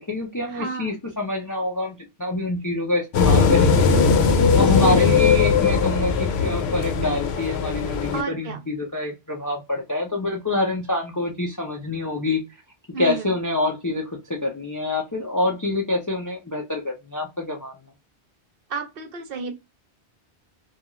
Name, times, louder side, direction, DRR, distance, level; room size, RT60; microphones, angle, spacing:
voice 1, 0.0-3.9 4.5-12.4 13.0-17.7, left 2 dB, 30° left, 0.4 m, -26 dB
voice 2, 0.5-1.0 4.5-5.0 8.1-8.6 12.9-13.3 18.7-19.5, right 5 dB, 65° right, 0.8 m, -31 dB
sound 1, 3.1-8.2, left 5 dB, 75° left, 0.8 m, -19 dB
2.3 x 2.3 x 3.0 m
omnidirectional pair, 1.1 m